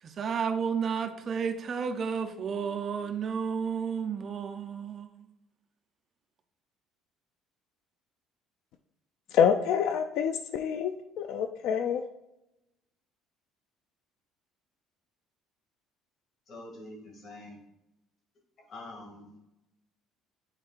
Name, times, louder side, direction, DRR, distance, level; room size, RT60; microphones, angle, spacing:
voice 1, 0.0-5.1, right 6 dB, 40° right, 0.5 m, -32 dB
voice 2, 9.3-10.9 11.2-12.0, left 8 dB, 70° left, 0.4 m, -26 dB
voice 3, 16.5-17.6 18.7-19.3, left 2 dB, 45° left, 2.1 m, -45 dB
8.8 x 4.5 x 2.4 m
cardioid pair, 120°, 0 cm